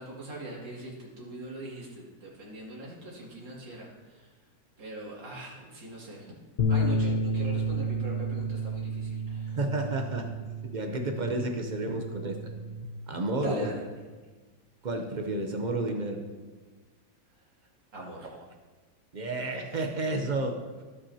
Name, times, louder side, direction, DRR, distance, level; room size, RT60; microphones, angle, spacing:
voice 1, 0.0-4.3 4.8-6.3 6.7-9.6 13.4-13.8 17.9-18.3, right 1 dB, 85° right, -5 dB, 3.1 m, -40 dB
sound 1, 6.6-12.8, right 1 dB, 85° left, 0.4 m, -31 dB
voice 2, 9.5-10.3 10.6-12.5 13.1-13.7 14.8-16.2 18.2-18.4 19.1-20.6, right 2 dB, 60° right, 3 dB, 0.4 m, -31 dB
17.0 x 5.9 x 2.8 m, 1.3 s
omnidirectional pair, 1.9 m